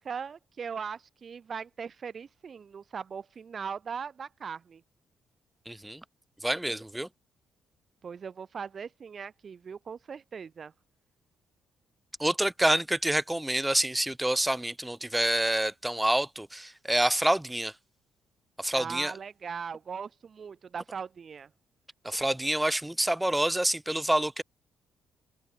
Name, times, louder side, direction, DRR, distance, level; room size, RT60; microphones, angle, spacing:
voice 1, 0.0-4.8 8.0-10.7 18.7-21.5, right 6 dB, 45° right, 2.9 m, -39 dB
voice 2, 5.7-6.0 6.4-7.1 12.2-17.7 18.6-19.1 22.0-24.4, right 1 dB, 5° right, 1.4 m, -27 dB
cardioid pair, 90°, 0 cm